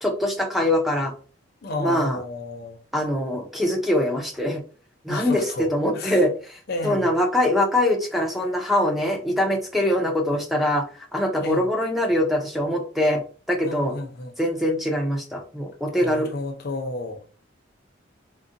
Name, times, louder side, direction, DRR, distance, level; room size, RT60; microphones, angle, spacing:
voice 1, 0.0-1.1 1.8-2.2 2.9-4.6 5.0-13.2 13.5-13.9 14.4-16.3, left 1 dB, ahead, 0.4 m, -23 dB
voice 2, 1.6-2.8 5.1-6.2 6.7-7.2 11.4-11.7 13.6-14.3 16.0-17.2, left 2 dB, 50° left, 0.5 m, -32 dB
3.7 x 2.1 x 2.5 m
head